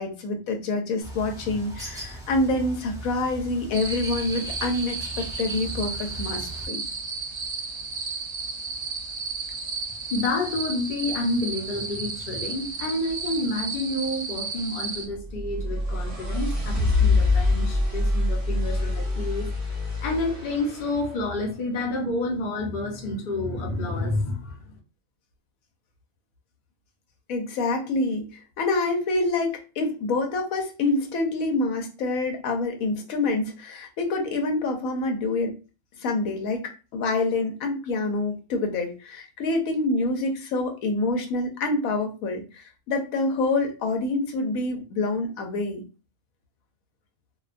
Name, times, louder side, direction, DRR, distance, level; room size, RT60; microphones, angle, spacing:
voice 1, 0.0-6.8 27.3-35.5 36.0-45.8, left 2 dB, 85° left, 4 dB, 1.0 m, -27 dB
Bird, 1.0-6.7, right 1 dB, 5° right, 0.5 m, -39 dB
sound 1, 3.7-15.1, right 4 dB, 60° right, 0.9 m, -33 dB
voice 2, 10.1-24.7, left 2 dB, 45° left, 0 dB, 0.7 m, -29 dB
sound 2, 15.1-21.2, left 2 dB, 30° right, 0.9 m, -25 dB
2.5 x 2.2 x 2.4 m, 0.32 s
omnidirectional pair, 1.4 m